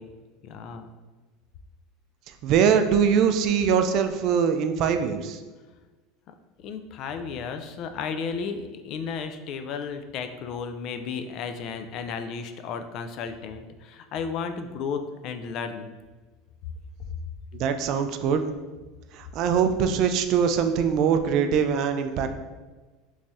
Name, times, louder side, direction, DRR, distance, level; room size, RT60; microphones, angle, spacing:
voice 1, 0.4-0.9 6.6-16.0, left 5 dB, 50° left, 7 dB, 0.3 m, -33 dB
voice 2, 2.4-5.4 17.5-18.4 19.1-22.3, right 7 dB, 55° right, 8 dB, 0.3 m, -22 dB
3.1 x 2.7 x 3.4 m, 1.3 s
supercardioid pair, 115°, 0 cm